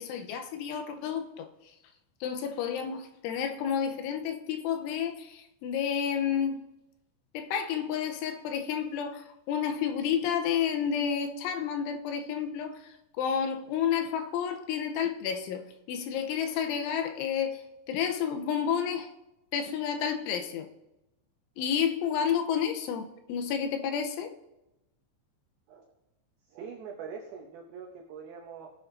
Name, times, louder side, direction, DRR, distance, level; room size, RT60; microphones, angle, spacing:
voice 1, 0.0-1.5 2.2-6.6 7.3-12.8 13.2-19.1 19.5-20.7 21.6-24.3, left 8 dB, 90° left, 3.1 m, -30 dB
voice 2, 26.5-28.7, right 6 dB, 90° right, 2.0 m, -43 dB
18.5 x 7.6 x 2.6 m
omnidirectional pair, 5.5 m